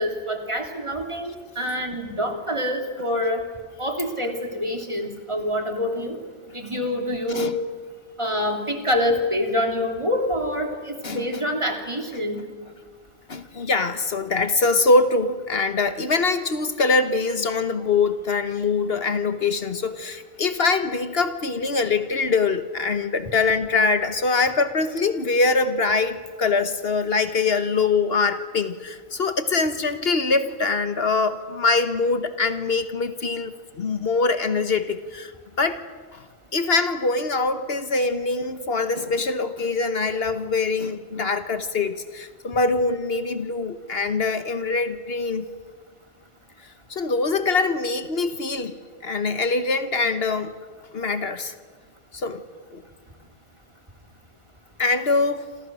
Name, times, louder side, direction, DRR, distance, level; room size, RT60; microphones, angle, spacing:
voice 1, 0.0-3.4 3.8-6.2 6.5-7.5 8.2-12.4, left 1 dB, 25° right, 3 dB, 3.2 m, -26 dB
voice 2, 13.3-35.3 35.6-35.8 36.1-36.2 36.5-45.5 46.9-48.7 49.0-50.5 50.9-51.5 52.1-52.4 52.7-52.8 54.8-55.5, left 3 dB, 65° left, 10 dB, 1.5 m, -23 dB
28.5 x 27.5 x 6.2 m, 1.5 s
omnidirectional pair, 1.1 m